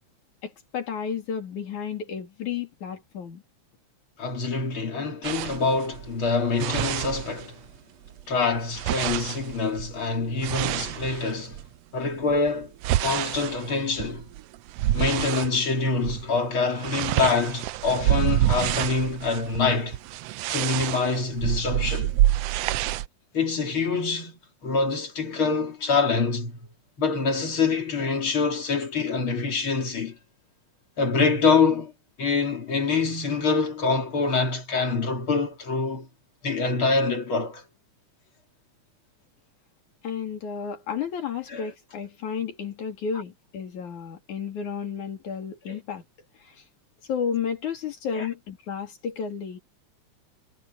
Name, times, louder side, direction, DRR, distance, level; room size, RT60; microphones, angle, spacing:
voice 1, 0.4-3.4 40.0-46.0 46.4-46.6 47.1-49.6, left 7 dB, 75° left, 4.2 m, -32 dB
voice 2, 4.2-7.6 8.3-11.6 11.9-12.7 13.0-14.3 14.9-20.0 20.5-22.1 23.3-26.6 27.0-30.2 31.0-31.9 32.2-36.1 36.4-37.6 41.5-41.7 45.7-45.8 48.1-48.3, left 4 dB, 45° left, 3.6 m, -25 dB
sound 1, 5.2-7.8 8.1-11.7 12.2-15.6 16.0-16.3 16.5-23.1, right 14 dB, 80° right, 1.4 m, -27 dB
omnidirectional pair, 3.4 m